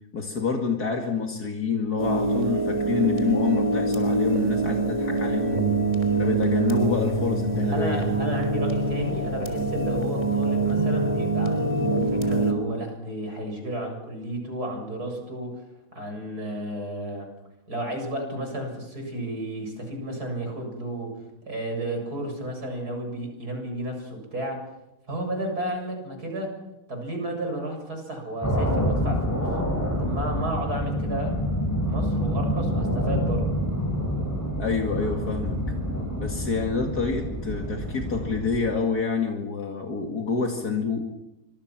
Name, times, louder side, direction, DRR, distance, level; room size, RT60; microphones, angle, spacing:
voice 1, 0.1-5.6 6.2-8.1 34.6-35.6 36.2-41.0, left 5 dB, 75° left, 2 dB, 2.8 m, -27 dB
sound 1, 2.0-12.5, right 3 dB, 20° right, 3.6 m, -24 dB
voice 2, 7.7-15.6 15.9-17.3 17.7-21.1 21.5-24.6 25.1-26.5 26.9-29.5 30.0-31.3 31.8-33.4, right 1 dB, 75° right, 3 dB, 8.1 m, -32 dB
sound 2, 28.4-38.8, equal, 10° left, 6.1 m, -27 dB
27.5 x 25.0 x 6.0 m, 0.93 s
omnidirectional pair, 1.7 m